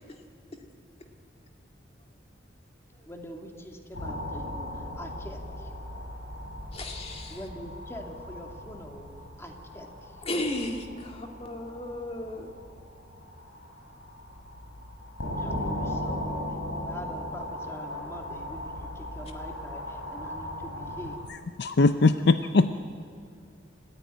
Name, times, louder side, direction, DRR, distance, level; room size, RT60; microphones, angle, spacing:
voice 1, 3.1-5.7 7.3-9.1 9.4-10.2 15.4-16.4 16.7-21.2, equal, 15° left, 2 dB, 2.4 m, -44 dB
sound 1, 3.9-21.2, left 1 dB, 85° left, 5.9 m, -38 dB
voice 2, 6.7-7.4 10.2-12.5, left 1 dB, 35° left, 3 dB, 2.2 m, -34 dB
voice 3, 21.6-22.7, left 3 dB, 60° left, 10 dB, 0.6 m, -21 dB
27.0 x 14.5 x 9.4 m, 2.4 s
head